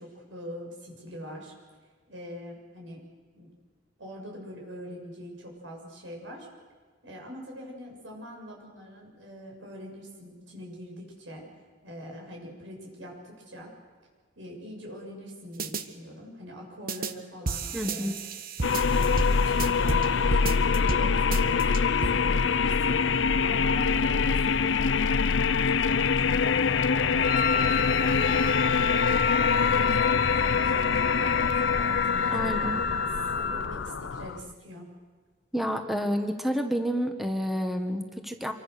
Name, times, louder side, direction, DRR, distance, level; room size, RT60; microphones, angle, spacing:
voice 1, 0.0-1.5 2.1-3.0 3.3-3.5 4.0-6.5 7.0-11.5 11.8-13.7 14.4-18.1 18.9-28.6 29.4-32.7 33.3-34.9, equal, 90° right, 0 dB, 7.1 m, -43 dB
sound 1, 15.6-15.8 16.9-17.1 17.5-20.1 20.3-21.0 21.3-22.1, right 4 dB, 50° right, 1.2 m, -32 dB
voice 2, 17.7-18.2 32.3-32.8 35.5-38.5, equal, ahead, 5 dB, 1.5 m, -29 dB
sound 2, 18.6-34.5, left 5 dB, 80° left, 0.6 m, -24 dB
Wind instrument woodwind instrument, 27.2-33.8, left 5 dB, 50° left, 1.0 m, -30 dB
27.0 x 24.0 x 6.7 m, 1.5 s
head